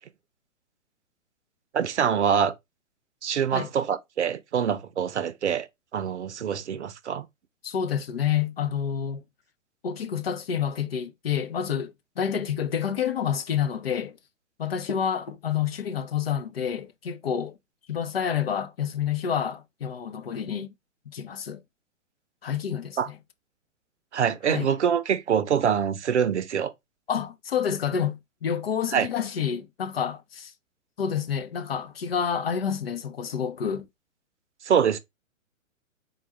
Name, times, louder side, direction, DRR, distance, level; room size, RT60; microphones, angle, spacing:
voice 1, 1.7-2.5 3.2-5.7 5.9-7.2 23.0-23.1 24.1-26.7 28.9-29.1 34.7-35.0, right 8 dB, 60° right, 0.6 m, -25 dB
voice 2, 7.6-9.2 9.8-14.2 14.6-17.6 17.9-20.7 21.1-21.6 22.4-23.2 24.4-24.7 27.1-30.5 31.0-33.9, left 8 dB, 50° left, 0.5 m, -28 dB
3.8 x 2.2 x 4.0 m
figure-of-eight pair, 120°, 40 cm